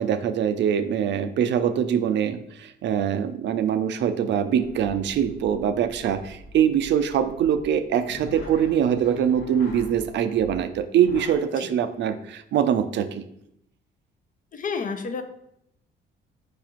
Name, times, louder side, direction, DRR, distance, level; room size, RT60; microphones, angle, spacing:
voice 1, 0.0-13.2, right 8 dB, 65° right, 10 dB, 0.4 m, -23 dB
sound 1, 4.6-11.4, equal, 85° left, 1.0 m, -44 dB
voice 2, 14.5-15.2, left 5 dB, 40° left, 7 dB, 0.5 m, -30 dB
4.7 x 2.5 x 4.4 m, 0.76 s
cardioid pair, 90°, 20 cm